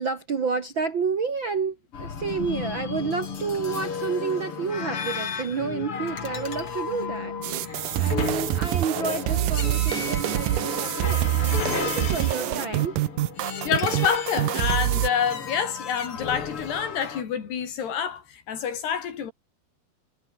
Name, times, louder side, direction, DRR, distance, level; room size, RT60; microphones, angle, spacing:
voice 1, 0.0-13.0, right 5 dB, 50° right, 1.4 m, -30 dB
sound 1, 1.9-17.2, left 6 dB, 40° left, 3.2 m, -33 dB
sound 2, 7.4-15.1, right 16 dB, 75° right, 2.1 m, -26 dB
voice 2, 13.7-19.3, left 8 dB, 90° left, 5.6 m, -27 dB
omnidirectional pair, 4.6 m